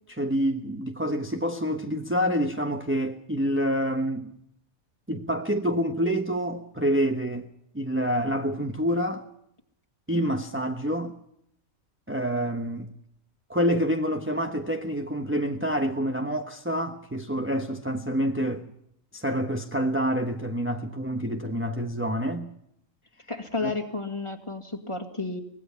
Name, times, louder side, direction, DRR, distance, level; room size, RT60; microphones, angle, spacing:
voice 1, 0.1-4.4 5.1-7.5 7.7-9.2 10.1-11.1 12.1-12.9 13.5-18.6 19.1-22.5 23.6-23.7, equal, 10° right, 1.1 m, -27 dB
voice 2, 23.3-25.4, left 3 dB, 20° left, 2.1 m, -32 dB
24.5 x 20.0 x 5.8 m
omnidirectional pair, 1.4 m